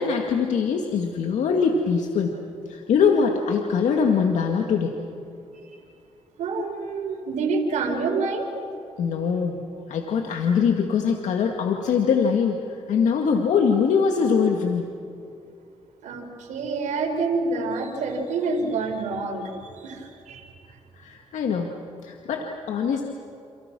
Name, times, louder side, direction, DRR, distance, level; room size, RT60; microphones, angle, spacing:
voice 1, 0.0-2.4 2.7-4.9 9.0-9.6 9.9-14.9 21.0-21.7 22.0-23.0, left 6 dB, 85° left, 2 dB, 2.1 m, -22 dB
voice 2, 6.4-8.5 16.0-20.5, right 4 dB, 90° right, 3 dB, 4.7 m, -27 dB
30.0 x 28.5 x 6.2 m, 2.7 s
cardioid pair, 80°, 12 cm